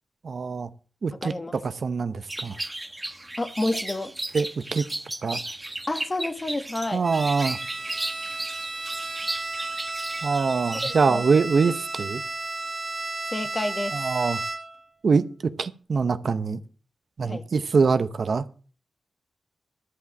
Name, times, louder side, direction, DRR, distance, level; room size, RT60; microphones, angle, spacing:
voice 1, 0.2-0.7 1.0-2.6 4.3-4.9 5.2-5.4 6.9-7.6 10.2-12.2 13.9-14.4 15.0-15.2 15.6-16.6 17.2-18.4, right 5 dB, 65° right, 0.8 m, -24 dB
voice 2, 1.1-1.6 3.4-4.1 5.9-7.1 10.7-11.3 13.3-14.1 17.2-17.4, left 1 dB, 35° left, 1.5 m, -29 dB
sound 1, 2.3-10.9, right 1 dB, 20° right, 1.3 m, -35 dB
Bowed string instrument, 7.0-14.9, right 2 dB, 50° right, 1.4 m, -33 dB
13.0 x 5.7 x 7.3 m
cardioid pair, 50°, 0 cm